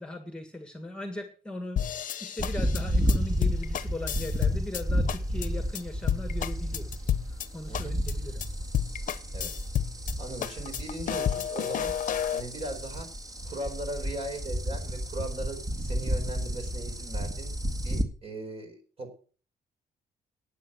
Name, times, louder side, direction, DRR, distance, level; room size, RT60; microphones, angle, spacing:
voice 1, 0.0-1.8 2.2-7.0 7.5-8.4, left 1 dB, 5° left, 6 dB, 1.7 m, -38 dB
sound 1, 1.8-4.8 5.1-5.5 5.7-5.8 6.1-7.5 7.7-8.1 8.4-8.5 8.7-10.1 10.4-12.4, left 9 dB, 60° left, 0.9 m, -30 dB
sound 2, 2.4-18.0, equal, 25° right, 1.9 m, -32 dB
voice 2, 7.7-8.0 9.3-9.5 10.2-11.9 12.3-13.1 13.4-19.1, right 1 dB, 40° right, 5 dB, 4.6 m, -38 dB
12.0 x 9.3 x 6.4 m, 0.41 s
cardioid pair, 135°, 15 cm